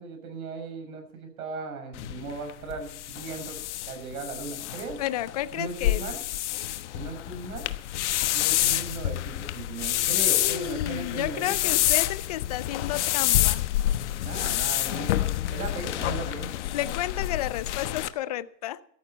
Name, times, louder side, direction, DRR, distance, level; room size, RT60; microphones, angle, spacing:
voice 1, 0.0-3.6 3.8-5.0 5.5-6.2 6.9-7.7 8.3-11.7 14.1-16.5, right 4 dB, 60° right, 6 dB, 6.4 m, -37 dB
sound 1, 1.9-18.1, left 14 dB, 45° left, 1.1 m, -28 dB
voice 2, 5.0-6.0 10.4-13.6 16.7-18.8, left 13 dB, 25° left, 18 dB, 0.5 m, -31 dB
17.0 x 14.0 x 4.3 m, 0.67 s
hypercardioid pair, 135°, 48 cm